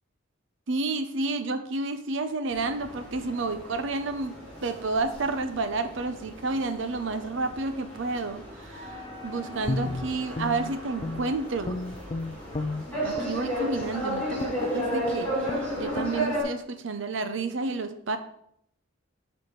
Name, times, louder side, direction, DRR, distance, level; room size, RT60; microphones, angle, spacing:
voice 1, 0.7-11.8 13.0-18.2, right 3 dB, 70° right, 9 dB, 0.6 m, -30 dB
sound 1, 2.5-16.4, equal, 5° left, 2.0 m, -34 dB
Guitar, 9.6-11.4 11.6-13.4 13.8-14.0 14.4-14.7 15.0-15.2 15.4-15.7 15.9-16.1, left 2 dB, 30° left, 0.4 m, -33 dB
5.0 x 4.1 x 5.7 m, 0.72 s
head